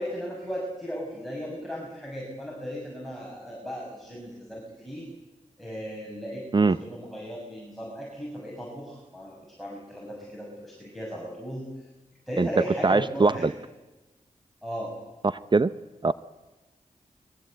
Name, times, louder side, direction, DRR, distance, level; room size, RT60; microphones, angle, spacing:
voice 1, 0.0-5.1 5.6-11.7 12.3-13.5 14.6-14.9, equal, ahead, -4 dB, 7.2 m, -36 dB
voice 2, 12.8-13.5 15.2-15.7 16.0-16.1, right 3 dB, 35° right, 14 dB, 0.7 m, -21 dB
22.5 x 22.0 x 8.1 m, 1.1 s
cardioid pair, 50°, 14 cm